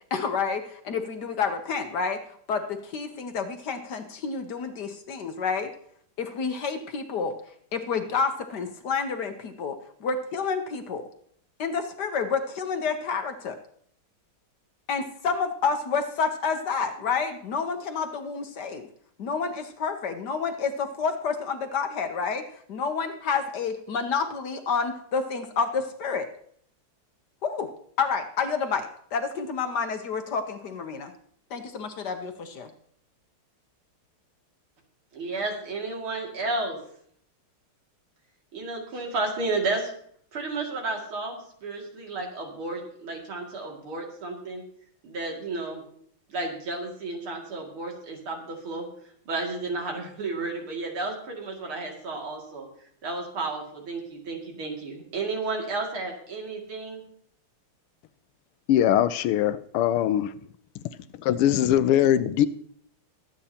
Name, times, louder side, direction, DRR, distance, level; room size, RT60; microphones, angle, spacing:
voice 1, 0.1-2.2 2.5-5.7 6.2-7.3 7.7-11.0 11.6-13.6 14.9-18.9 19.2-22.4 22.7-26.3 27.4-27.7 28.0-31.1 31.5-32.7, left 5 dB, 60° left, 6 dB, 1.3 m, -29 dB
voice 2, 35.1-36.8 38.5-39.9 40.3-44.6 45.0-45.8 46.3-48.9 49.3-52.7 53.0-57.0, right 3 dB, 75° right, 0 dB, 3.2 m, -32 dB
voice 3, 58.7-60.3 61.1-62.5, left 11 dB, 90° left, 14 dB, 1.6 m, -21 dB
22.5 x 8.9 x 2.9 m, 0.63 s
omnidirectional pair, 2.4 m